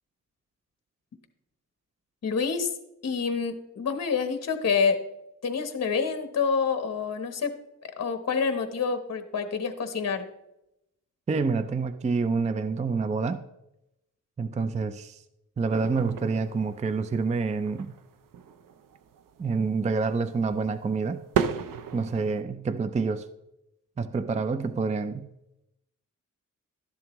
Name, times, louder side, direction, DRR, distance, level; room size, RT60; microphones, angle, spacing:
voice 1, 2.2-2.7 3.0-5.0 5.4-7.5 8.0-10.2, left 5 dB, 55° left, 1.0 m, -27 dB
voice 2, 11.3-13.4 14.4-15.2 15.6-17.9 19.4-21.2 21.9-23.3 24.0-25.3, right 4 dB, 25° right, 0.4 m, -27 dB
sound 1, 15.7-22.4, right 8 dB, 85° right, 0.6 m, -35 dB
12.5 x 10.5 x 3.0 m
wide cardioid pair, 150°, 32 cm